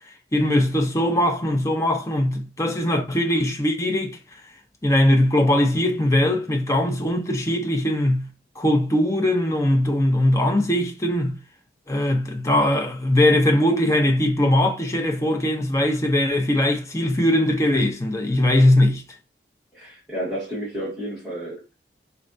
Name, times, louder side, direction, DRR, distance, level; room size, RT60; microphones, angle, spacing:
voice 1, 0.3-4.2 4.8-8.3 8.6-11.4 11.9-19.0, left 1 dB, 15° left, 0.6 m, -20 dB
voice 2, 19.7-21.6, right 1 dB, ahead, 1.5 m, -31 dB
4.2 x 3.2 x 2.6 m
head